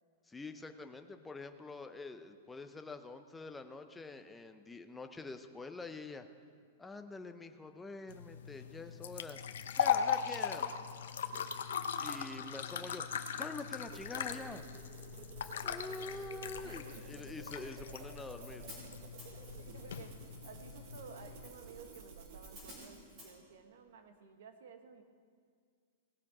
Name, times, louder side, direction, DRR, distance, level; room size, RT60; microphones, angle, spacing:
voice 1, 0.3-6.3 6.8-9.4 9.8-10.8 11.3-11.4 12.0-13.0 13.4-14.6 15.6-18.7, left 3 dB, 5° left, 7 dB, 0.4 m, -46 dB
sound 1, 8.1-21.5, left 8 dB, 90° left, 0.8 m, -39 dB
sound 2, 13.9-22.8, right 6 dB, 35° right, 0.9 m, -53 dB
Hi-hat, 15.4-23.3, equal, 20° right, 3.6 m, -57 dB
voice 2, 16.6-17.2 19.3-25.0, right 6 dB, 60° right, 7 dB, 1.2 m, -54 dB
18.0 x 7.3 x 4.8 m, 2.1 s
supercardioid pair, 180°, 0 cm